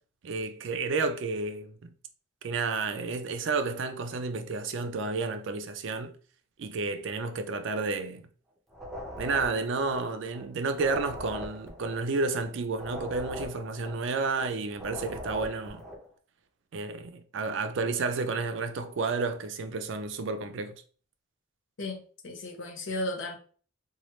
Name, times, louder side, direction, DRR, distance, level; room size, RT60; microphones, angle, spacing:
voice 1, 0.2-1.9 2.4-6.1 6.6-8.3 9.2-15.8 16.7-20.8, right 3 dB, 65° right, 0.4 m, -31 dB
sound 1, 8.7-10.4 10.7-14.4 14.7-16.1, equal, ahead, 0.7 m, -41 dB
voice 2, 22.2-23.4, left 1 dB, 65° left, 0.8 m, -34 dB
3.0 x 2.3 x 3.0 m
head